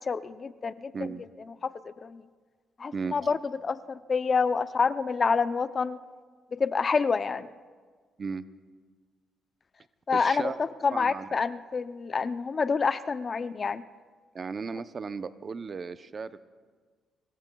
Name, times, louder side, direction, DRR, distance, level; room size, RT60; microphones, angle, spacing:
voice 1, 0.1-0.9 1.6-1.7 2.0-2.2 2.8-6.0 6.5-7.5 10.1-13.8, left 5 dB, 40° left, 13 dB, 0.5 m, -27 dB
voice 2, 10.1-10.6 10.9-11.3 14.3-16.4, right 5 dB, 40° right, 12 dB, 0.6 m, -35 dB
25.5 x 22.0 x 2.3 m, 1.5 s
cardioid pair, 90°, 0 cm